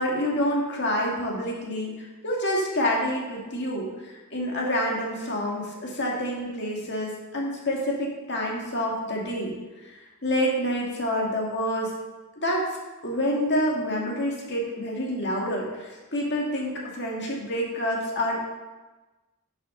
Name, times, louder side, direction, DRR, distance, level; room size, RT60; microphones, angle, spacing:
voice 1, 0.0-9.5 9.8-11.9 12.4-12.7 13.0-18.4, equal, 50° left, -2 dB, 1.9 m, -28 dB
11.5 x 6.4 x 3.8 m, 1.2 s
head